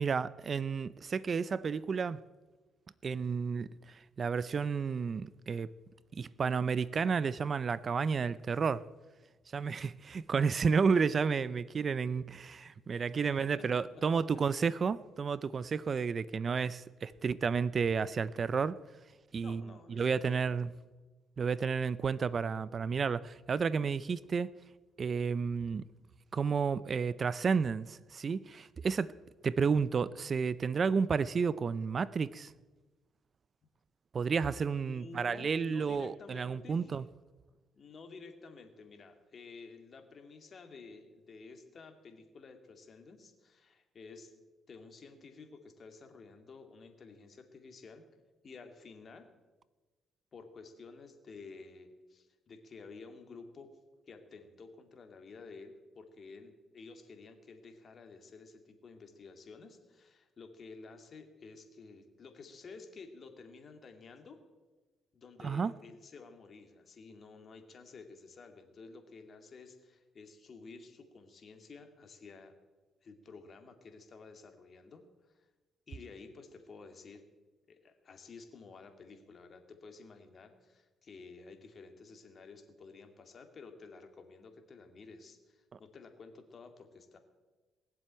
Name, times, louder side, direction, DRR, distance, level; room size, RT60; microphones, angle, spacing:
voice 1, 0.0-2.2 3.0-5.7 6.1-8.8 9.5-18.8 19.3-19.6 19.9-20.7 21.4-24.5 25.0-25.8 26.3-29.1 29.4-32.5 34.1-37.0 65.4-65.7, right 5 dB, 45° right, 0.5 m, -31 dB
voice 2, 19.4-20.7 34.9-37.0 37.7-44.3 44.7-48.0 48.4-49.3 50.3-53.7 54.1-64.4 65.1-72.5 73.0-75.5 75.9-77.2 77.7-87.2, left 4 dB, 45° left, 2.4 m, -52 dB
19.5 x 7.6 x 9.0 m
cardioid pair, 90°, 0 cm